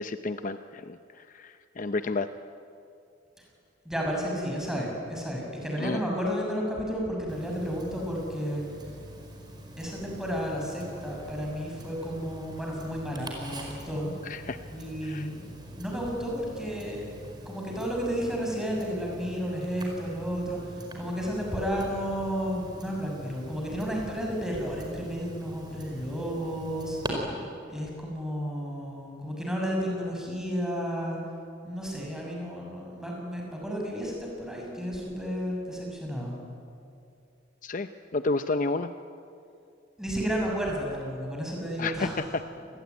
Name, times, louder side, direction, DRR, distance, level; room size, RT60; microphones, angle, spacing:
voice 1, 0.0-2.3 5.8-6.0 14.2-14.6 15.0-15.3 37.6-38.9 41.8-42.4, left 3 dB, 45° left, 10 dB, 0.7 m, -31 dB
voice 2, 3.9-8.6 9.8-14.1 14.7-15.5 15.7-17.1 17.5-27.4 27.7-31.2 31.6-36.4 40.0-42.2, equal, 5° right, -1 dB, 6.8 m, -32 dB
Tick-tock, 7.3-27.1, right 1 dB, 25° right, 4.9 m, -44 dB
28.0 x 20.5 x 9.6 m, 2.5 s
head